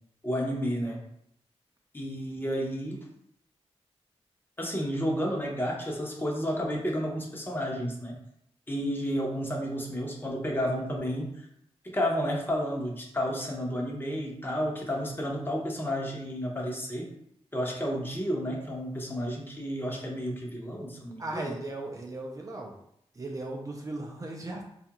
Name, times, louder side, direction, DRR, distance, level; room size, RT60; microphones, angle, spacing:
voice 1, 0.2-1.0 1.9-3.0 4.6-8.1 8.7-11.3 11.8-17.1 17.5-21.5, equal, 20° left, -1 dB, 0.7 m, -31 dB
voice 2, 21.2-22.8 23.1-24.6, right 2 dB, 30° right, 0 dB, 0.5 m, -37 dB
4.3 x 2.4 x 2.9 m, 0.73 s
wide cardioid pair, 120°, 11 cm